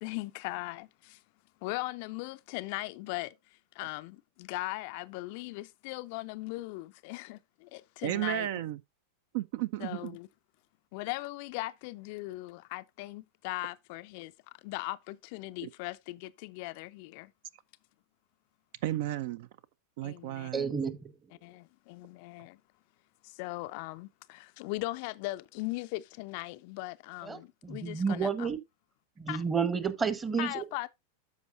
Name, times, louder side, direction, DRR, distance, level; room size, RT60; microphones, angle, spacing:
voice 1, 0.0-1.2 1.6-8.5 9.8-10.3 10.9-14.3 14.6-17.3 20.0-20.5 21.4-22.6 23.2-28.5 29.3-29.4 30.4-30.9, left 21 dB, 45° left, 0.3 m, -39 dB
voice 2, 8.0-8.8 9.3-10.2 15.6-15.7 18.8-19.5 20.0-20.8, right 13 dB, 50° right, 0.3 m, -33 dB
voice 3, 20.5-21.1 27.2-28.6 29.2-30.7, right 6 dB, 15° right, 1.0 m, -31 dB
13.0 x 4.7 x 2.5 m
figure-of-eight pair, 90°, 0 cm